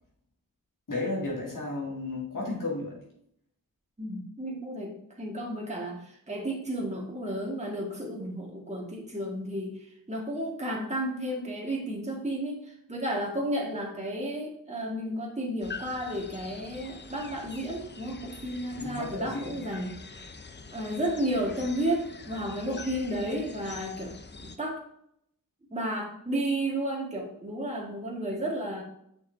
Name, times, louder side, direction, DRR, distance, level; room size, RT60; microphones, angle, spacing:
voice 1, 0.9-3.0 18.7-19.6, left 2 dB, 65° left, -4 dB, 2.2 m, -33 dB
voice 2, 4.0-20.0 20.7-24.8 25.7-28.8, right 1 dB, 20° right, -2 dB, 1.7 m, -32 dB
sound 1, 15.6-24.6, left 4 dB, 30° left, 0.7 m, -45 dB
6.8 x 5.9 x 2.6 m, 0.73 s
cardioid pair, 55°, 34 cm